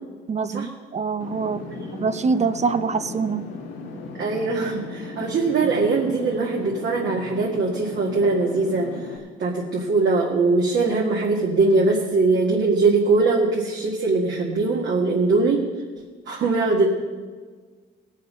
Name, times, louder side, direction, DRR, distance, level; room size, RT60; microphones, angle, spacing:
voice 1, 0.3-1.7 1.9-3.5, right 5 dB, 35° right, 12 dB, 0.7 m, -24 dB
sound 1, 1.2-9.2, left 3 dB, 90° left, 1.8 m, -36 dB
voice 2, 4.2-8.9 9.4-15.6 16.3-16.9, right 3 dB, 65° right, -4 dB, 2.1 m, -21 dB
18.5 x 6.6 x 5.6 m, 1.5 s
cardioid pair, 90°, 20 cm